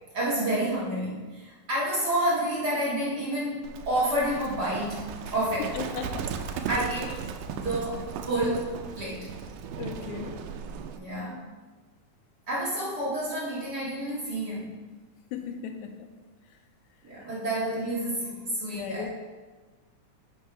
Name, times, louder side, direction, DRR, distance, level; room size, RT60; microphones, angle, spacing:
voice 1, 0.1-5.7 6.7-7.2 7.5-8.6 9.0-9.3 10.9-11.4 12.5-14.8 17.0-19.1, right 1 dB, 35° right, -6 dB, 2.1 m, -29 dB
Livestock farm animals working animals, 3.6-11.0, right 6 dB, 90° right, 2.2 m, -37 dB
voice 2, 5.7-6.3 9.8-10.4 11.1-11.4 15.3-16.1 18.7-19.1, left 7 dB, 85° left, 5 dB, 2.1 m, -37 dB
9.9 x 5.5 x 4.7 m, 1.3 s
omnidirectional pair, 3.5 m